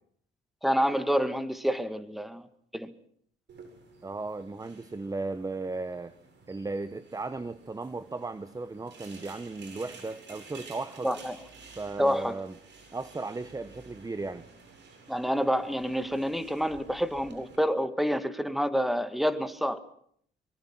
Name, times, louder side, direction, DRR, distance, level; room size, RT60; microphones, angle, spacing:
voice 1, 0.6-2.4 2.7-2.9 11.0-11.4 12.0-12.4 15.1-19.8, equal, ahead, 11 dB, 1.9 m, -28 dB
sound 1, 3.5-17.6, right 4 dB, 65° right, 8.0 m, -52 dB
voice 2, 4.0-6.1 6.5-11.1 11.8-12.5 12.9-14.5, right 3 dB, 15° right, 13 dB, 0.9 m, -36 dB
24.5 x 24.0 x 6.0 m, 0.65 s
cardioid pair, 90°, 20 cm